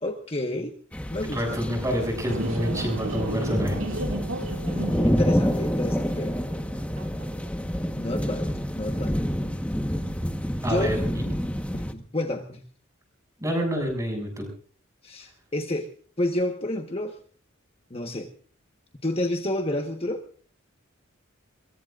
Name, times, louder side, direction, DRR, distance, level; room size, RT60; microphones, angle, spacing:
voice 1, 0.0-0.7 1.1-1.4 5.0-6.3 8.0-8.5 8.7-9.1 10.6-10.9 11.7-12.6 15.0-15.9 16.2-17.1 17.9-18.3 19.0-20.2, left 1 dB, 30° left, 4 dB, 1.3 m, -29 dB
sound 1, 0.9-11.9, equal, 5° left, 1.2 m, -28 dB
voice 2, 1.2-3.8 10.6-11.2 13.4-14.5, equal, 15° right, 3 dB, 6.9 m, -28 dB
sound 2, 2.3-7.6, right 1 dB, 75° right, 1.9 m, -35 dB
23.0 x 22.5 x 2.5 m, 0.43 s
head